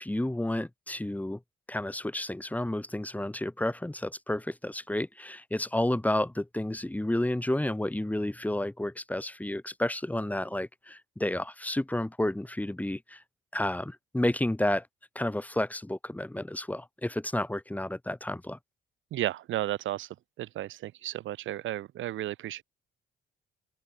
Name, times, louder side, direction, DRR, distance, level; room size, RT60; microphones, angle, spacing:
voice 1, 0.0-1.4 1.7-13.2 13.5-14.8 15.2-18.6, left 1 dB, 10° left, 2.2 m, -31 dB
voice 2, 19.1-20.1 20.4-22.6, right 14 dB, 75° right, 1.0 m, -33 dB
open air
cardioid pair, 90°, 20 cm